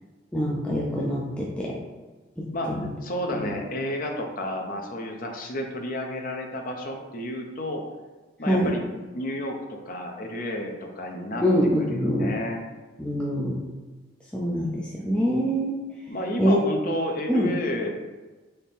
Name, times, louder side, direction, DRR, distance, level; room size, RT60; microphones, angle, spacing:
voice 1, 0.3-1.8 2.4-2.9 3.3-3.5 8.4-8.8 11.4-12.3 13.0-13.6 14.3-15.8 16.4-16.6 17.3-17.5, equal, 5° left, -5 dB, 0.5 m, -25 dB
voice 2, 2.5-7.8 8.4-11.4 11.9-12.6 16.1-17.9, left 1 dB, 45° left, 2 dB, 0.7 m, -31 dB
4.3 x 3.5 x 3.5 m, 1.2 s
head